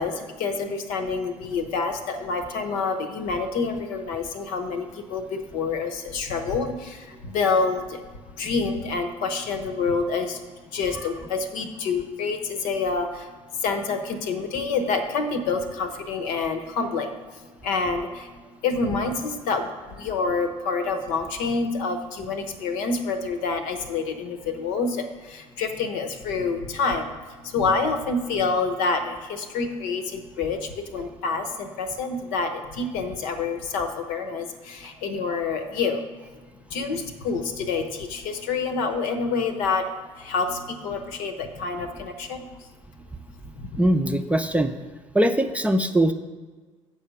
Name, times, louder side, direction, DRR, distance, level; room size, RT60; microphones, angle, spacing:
voice 1, 0.0-8.0 8.3-10.4 10.7-36.0 36.7-43.0 43.5-43.8, left 4 dB, 65° left, 7 dB, 1.0 m, -27 dB
voice 2, 43.8-44.7 45.1-46.1, right 1 dB, 10° right, 6 dB, 0.6 m, -21 dB
7.2 x 4.9 x 6.9 m, 1.4 s
figure-of-eight pair, 60°, 16 cm